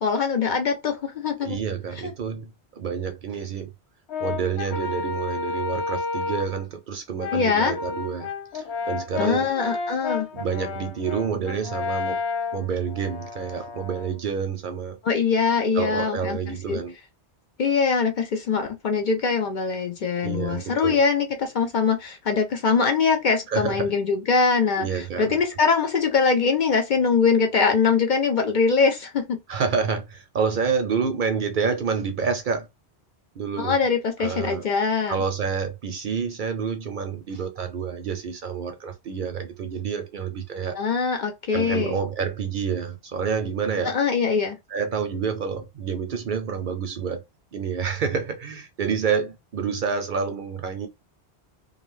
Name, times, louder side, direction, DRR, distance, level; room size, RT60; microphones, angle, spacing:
voice 1, 0.0-1.6 2.0-2.1 7.3-7.8 9.2-10.3 15.0-16.4 16.7-16.8 17.6-29.4 33.6-35.2 40.8-42.0 43.8-44.6, left 5 dB, 55° left, 0.6 m, -22 dB
voice 2, 1.4-3.7 4.2-8.3 8.5-9.5 10.3-12.2 12.5-15.0 15.7-17.0 20.2-21.0 23.5-23.9 24.8-25.4 29.5-32.7 33.4-33.8 34.2-34.7 35.1-40.8 41.5-43.9 44.7-47.2 47.5-50.9, right 6 dB, 60° right, 0.6 m, -28 dB
Brass instrument, 4.1-6.6 7.2-14.2, left 4 dB, 80° left, 0.9 m, -31 dB
2.5 x 2.3 x 3.1 m
omnidirectional pair, 1.1 m